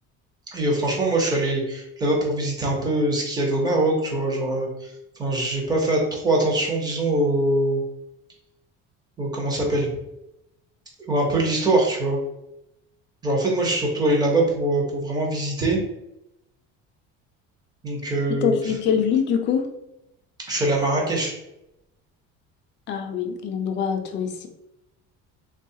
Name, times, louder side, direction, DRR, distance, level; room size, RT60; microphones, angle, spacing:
voice 1, 0.5-4.9 5.2-7.8 9.2-9.9 11.1-12.2 13.2-15.8 17.8-18.7 20.5-21.3, right 1 dB, 15° right, -1 dB, 0.6 m, -23 dB
voice 2, 18.3-19.7 22.9-24.5, left 7 dB, 40° left, 5 dB, 0.4 m, -24 dB
3.5 x 2.3 x 2.7 m, 0.87 s
cardioid pair, 165°, 29 cm